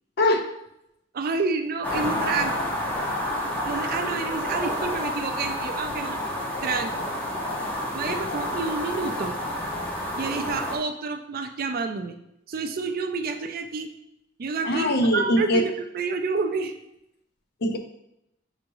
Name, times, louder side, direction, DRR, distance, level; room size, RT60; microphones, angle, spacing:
voice 1, 0.2-0.5 8.1-8.4 14.6-15.7 17.6-17.8, left 1 dB, 60° left, 5 dB, 0.5 m, -22 dB
voice 2, 1.1-2.7 3.6-6.2 6.6-7.1 7.9-9.4 10.2-12.2 12.5-13.9 14.4-14.9 15.1-16.7, right 4 dB, 50° right, 7 dB, 0.4 m, -29 dB
sound 1, 1.8-10.8, left 1 dB, 10° left, 0.7 m, -29 dB
6.4 x 3.1 x 2.6 m, 0.82 s
head